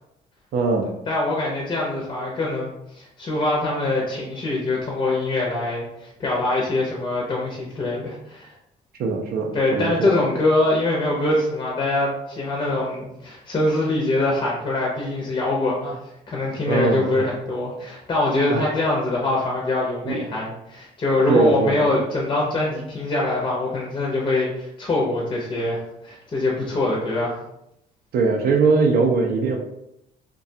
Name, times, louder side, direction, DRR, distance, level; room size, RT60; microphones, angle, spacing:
voice 1, 0.5-0.9 9.0-10.1 16.7-17.2 18.5-18.7 20.0-20.2 21.3-21.8 28.1-29.6, right 4 dB, 65° right, 2 dB, 0.4 m, -21 dB
voice 2, 1.1-8.5 9.5-16.0 16.3-27.4, left 2 dB, 30° left, -3 dB, 0.6 m, -23 dB
2.4 x 2.2 x 2.6 m, 0.82 s
cardioid pair, 110°, 17 cm